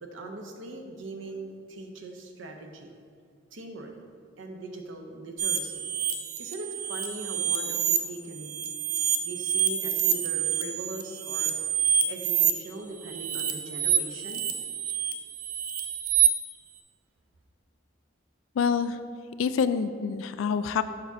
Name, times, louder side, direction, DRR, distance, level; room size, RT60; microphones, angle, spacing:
voice 1, 0.0-2.9 3.5-3.9 4.4-5.9 6.4-8.5 9.3-11.5 12.1-14.4, right 2 dB, 75° right, 3 dB, 0.7 m, -40 dB
sound 1, 5.4-8.0 8.3-12.5 13.0-16.3, right 9 dB, 45° right, 0.4 m, -27 dB
voice 2, 18.6-19.0 19.4-20.8, left 6 dB, 80° left, 13 dB, 0.3 m, -26 dB
6.7 x 5.8 x 2.7 m, 2.2 s
head